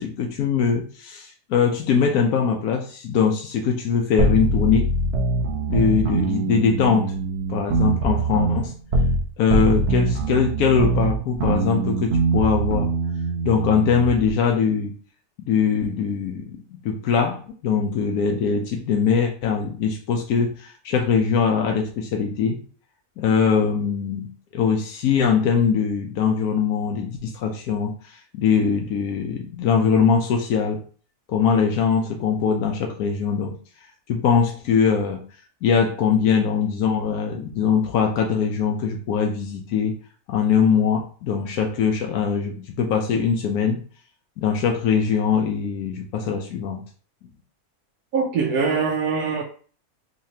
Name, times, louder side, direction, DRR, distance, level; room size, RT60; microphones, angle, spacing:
voice 1, 0.0-4.9 5.7-7.1 7.5-8.7 9.4-12.9 13.4-14.9 15.5-22.6 23.2-30.8 31.3-33.6 34.1-35.3 35.6-39.9 40.3-43.8 44.4-46.8, left 6 dB, 80° left, 1.1 m, -22 dB
sound 1, 4.2-9.2 9.5-14.3, right 3 dB, 55° right, 0.9 m, -23 dB
voice 2, 48.1-49.4, right 5 dB, 85° right, 1.1 m, -22 dB
4.1 x 3.0 x 2.7 m
omnidirectional pair, 1.5 m